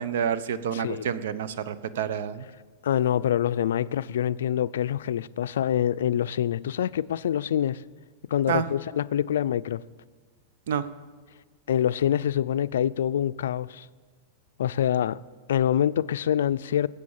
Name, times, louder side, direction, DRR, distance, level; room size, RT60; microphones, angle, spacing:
voice 1, 0.0-2.5 8.5-8.6 10.7-10.8, right 8 dB, 75° right, 0.9 m, -28 dB
voice 2, 0.7-1.1 2.8-7.8 8.3-9.8 11.7-13.9 14.6-15.2 15.5-16.9, left 10 dB, 85° left, 0.4 m, -25 dB
19.0 x 8.3 x 7.3 m
supercardioid pair, 135°, 0 cm